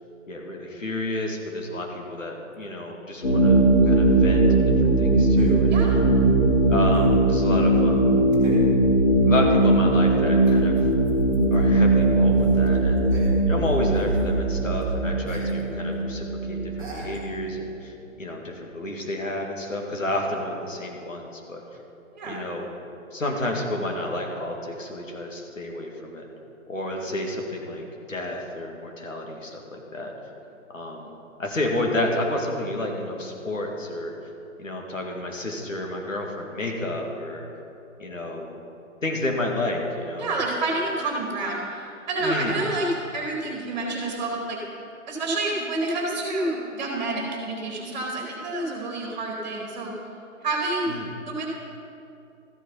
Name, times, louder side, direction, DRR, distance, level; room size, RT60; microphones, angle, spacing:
voice 1, 0.3-5.8 6.7-8.2 9.2-10.8 11.5-13.0 13.5-21.6 22.2-22.6 23.1-26.3 26.7-30.1 30.7-31.1 31.4-34.1 34.6-37.5 38.0-38.6 39.0-40.3 42.2-42.6 50.9-51.1, left 1 dB, 70° left, 1 dB, 2.2 m, -30 dB
sound 1, 2.5-2.6 5.4-5.7 6.9-7.3 8.3-8.8 10.4-11.7 12.0-12.1 12.3-13.7 13.9-14.2 14.8-14.9 15.3-15.6 15.9-16.0 16.8-17.2, right 2 dB, 10° right, 1.6 m, -37 dB
sound 2, 3.2-17.6, right 2 dB, 40° left, 2.3 m, -20 dB
voice 2, 40.2-44.6 45.1-49.9 50.4-50.9 51.2-51.5, right 2 dB, 30° right, -1 dB, 2.4 m, -28 dB
13.5 x 7.9 x 5.6 m, 2.7 s
figure-of-eight pair, 140°, 41 cm